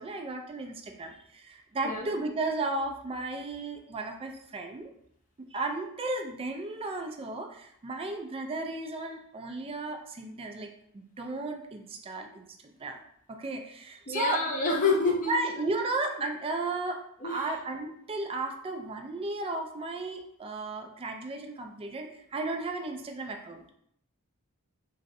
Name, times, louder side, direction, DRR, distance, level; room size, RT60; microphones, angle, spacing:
voice 1, 0.0-4.9 5.4-13.0 13.3-14.6 15.3-23.7, right 2 dB, 25° right, 4 dB, 0.3 m, -34 dB
voice 2, 14.1-15.3 17.2-17.5, left 3 dB, 35° left, -1 dB, 0.6 m, -27 dB
3.0 x 2.6 x 2.5 m, 0.72 s
head